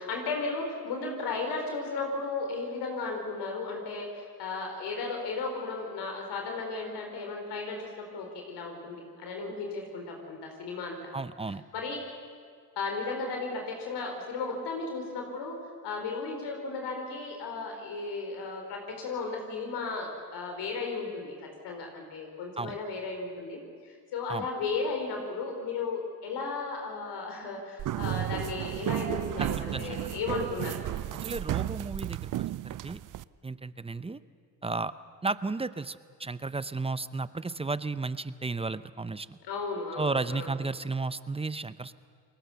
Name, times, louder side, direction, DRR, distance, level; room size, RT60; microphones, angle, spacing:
voice 1, 0.0-11.0 11.7-12.0 12.8-15.6 15.8-30.8 39.5-40.5, left 4 dB, 70° left, 2 dB, 4.3 m, -35 dB
voice 2, 11.1-11.6 22.6-22.8 24.3-24.5 29.4-30.1 31.2-32.3 32.6-33.0 33.4-34.2 34.6-34.9 35.2-39.4 40.0-41.9, right 3 dB, 15° right, 15 dB, 0.7 m, -33 dB
sound 1, 27.8-33.2, right 13 dB, 45° right, 0.6 m, -33 dB
29.0 x 21.0 x 7.0 m, 2.1 s
supercardioid pair, 90°, 43 cm